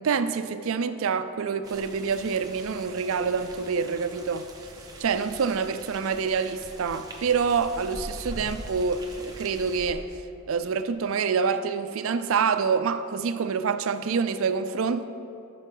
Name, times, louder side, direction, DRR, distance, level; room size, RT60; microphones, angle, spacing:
voice 1, 0.0-4.5 5.0-10.0 10.5-15.0, right 5 dB, 65° right, 0.4 m, -26 dB
sound 1, 1.6-9.9, right 1 dB, 15° right, 0.8 m, -43 dB
13.5 x 6.1 x 3.8 m
head